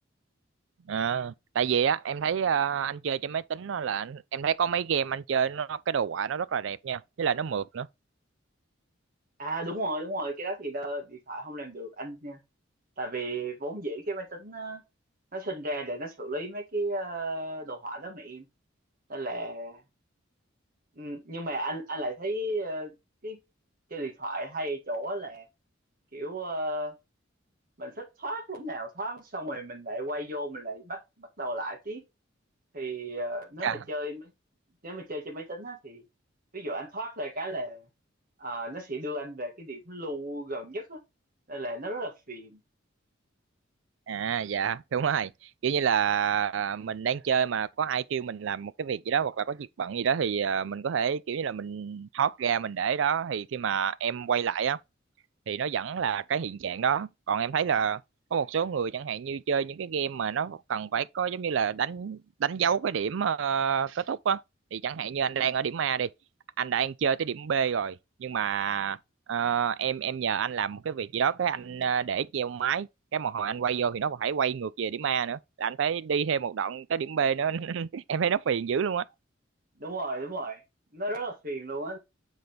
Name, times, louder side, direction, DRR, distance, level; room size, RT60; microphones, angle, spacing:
voice 1, 0.9-7.9 33.6-33.8 44.1-54.8 55.5-58.0 58.3-64.4 64.7-66.1 66.6-69.0 69.3-79.0, right 7 dB, 70° right, 0.4 m, -28 dB
voice 2, 9.4-12.4 13.0-14.8 15.3-18.5 19.1-19.8 21.0-22.9 23.2-23.4 23.9-25.5 26.1-26.9 27.8-32.0 32.7-34.3 34.8-36.0 36.5-37.9 38.4-41.0 41.5-42.6 65.4-65.5 79.8-80.6 80.9-82.0, right 1 dB, 45° right, 1.9 m, -34 dB
7.7 x 3.9 x 3.3 m
head